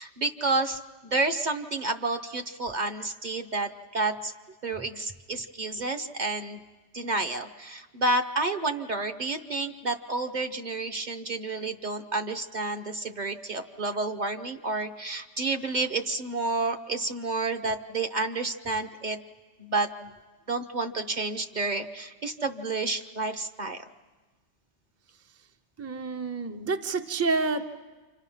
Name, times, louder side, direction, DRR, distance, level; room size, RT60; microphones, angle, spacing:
voice 1, 0.0-4.3 4.6-6.6 6.9-19.2 19.6-20.1 20.5-23.9, right 3 dB, 40° right, 6 dB, 1.0 m, -30 dB
voice 2, 25.8-27.7, right 4 dB, 15° right, 6 dB, 0.6 m, -28 dB
29.0 x 26.0 x 5.7 m, 1.3 s
omnidirectional pair, 1.2 m